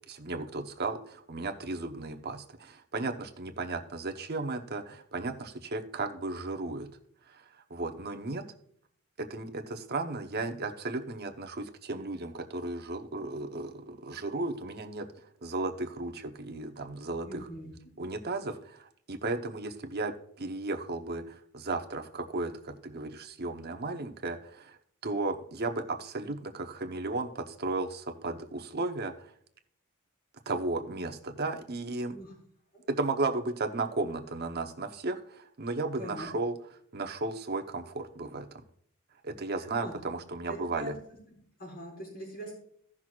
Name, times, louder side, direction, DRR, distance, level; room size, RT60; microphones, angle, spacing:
voice 1, 0.1-6.9 7.3-7.4 7.7-8.4 9.2-15.1 15.4-17.5 18.0-24.8 25.0-29.3 30.5-32.2 32.9-36.5 36.9-38.6 39.2-40.9, right 3 dB, 45° right, 5 dB, 0.9 m, -35 dB
voice 2, 17.2-17.7 32.1-32.3 32.7-32.9 36.0-36.3 39.8-40.0 40.5-40.9 41.3-42.5, equal, 45° left, -8 dB, 4.1 m, -42 dB
16.5 x 6.1 x 2.4 m, 0.66 s
head